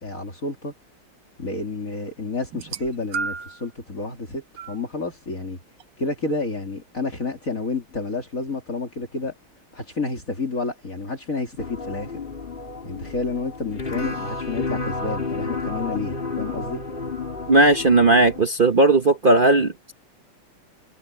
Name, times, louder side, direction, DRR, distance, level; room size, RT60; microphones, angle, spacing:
voice 1, 0.0-0.7 1.4-5.6 6.0-9.3 9.7-12.1 12.8-16.8, left 3 dB, 45° left, 3.2 m, -30 dB
sound 1, 2.5-3.7 4.6-4.8 5.8-5.9, right 5 dB, 70° right, 1.6 m, -31 dB
sound 2, 11.6-18.4, left 4 dB, 25° left, 2.7 m, -31 dB
voice 2, 17.5-19.9, right 2 dB, 40° right, 0.8 m, -17 dB
omnidirectional pair, 2.1 m